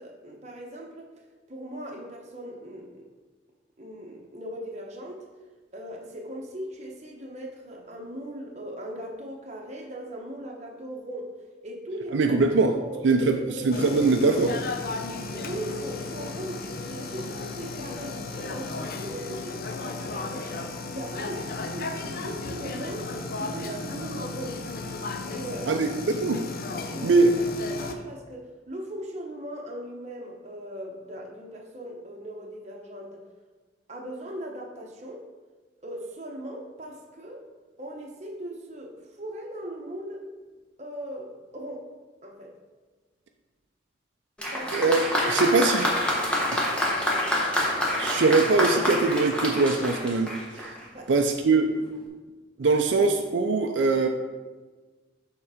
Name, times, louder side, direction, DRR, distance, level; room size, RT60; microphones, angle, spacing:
voice 1, 0.0-3.0 3.8-5.3 5.7-11.3 11.6-14.1 15.1-20.5 20.9-24.6 25.3-25.7 26.9-27.1 27.6-33.2 33.9-35.2 35.8-37.5 37.8-40.2 40.8-41.9 42.2-42.5 44.5-44.9 45.2-45.5 50.9-51.1 52.6-52.7, right 1 dB, 35° right, 0 dB, 0.9 m, -39 dB
voice 2, 12.1-12.8 13.0-14.6 25.7-26.4 27.0-27.3 44.7-45.9 46.5-46.7 48.0-50.7 51.1-51.7 52.6-54.1, right 3 dB, 75° right, 4 dB, 0.4 m, -22 dB
sound 1, 13.7-27.9, left 3 dB, 50° left, 0.5 m, -35 dB
Applause, 44.4-50.9 51.8-51.9, left 1 dB, 5° left, 0.9 m, -27 dB
7.1 x 3.7 x 4.9 m, 1.3 s
head